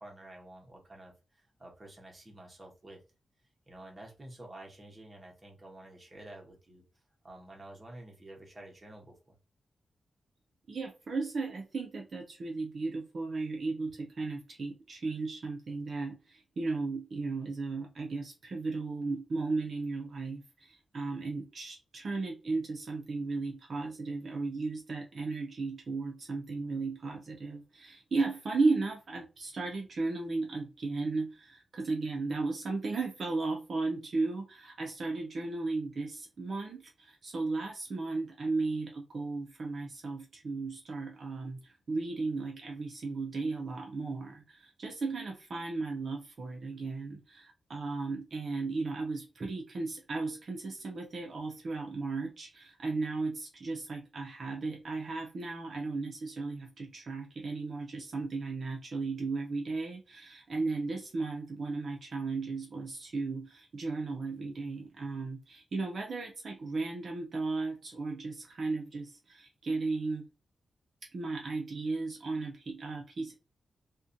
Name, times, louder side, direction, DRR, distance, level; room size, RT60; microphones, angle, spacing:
voice 1, 0.0-3.0 3.7-6.8 7.2-9.4, right 1 dB, 20° right, 0.7 m, -50 dB
voice 2, 10.7-70.3 71.0-73.3, right 3 dB, 45° right, 0.4 m, -35 dB
2.5 x 2.1 x 2.5 m
wide cardioid pair, 170°, 0 cm